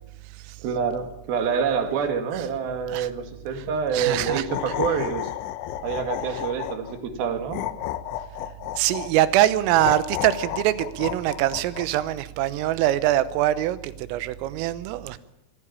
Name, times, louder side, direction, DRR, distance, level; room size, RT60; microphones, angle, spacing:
voice 1, 0.6-5.3 5.8-7.6, right 6 dB, 55° right, 3.3 m, -27 dB
voice 2, 3.9-4.5 8.8-15.2, right 14 dB, 90° right, 3.6 m, -23 dB
sound 1, 4.1-7.0 7.5-9.1 9.7-12.0, left 13 dB, 75° left, 3.1 m, -32 dB
22.0 x 15.0 x 8.8 m
omnidirectional pair, 5.9 m